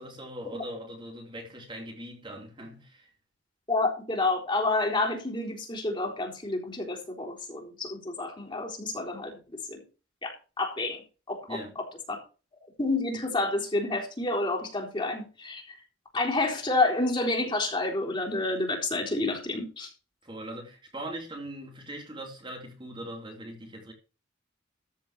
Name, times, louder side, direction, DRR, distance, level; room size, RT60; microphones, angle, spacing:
voice 1, 0.0-3.1 11.5-11.7 20.2-23.9, right 1 dB, 25° right, 3.3 m, -40 dB
voice 2, 3.7-9.4 9.7-9.8 10.2-11.0 11.3-11.6 12.1-12.2 12.8-15.6 16.1-19.9, left 2 dB, 25° left, 4.0 m, -29 dB
14.0 x 5.3 x 5.9 m
head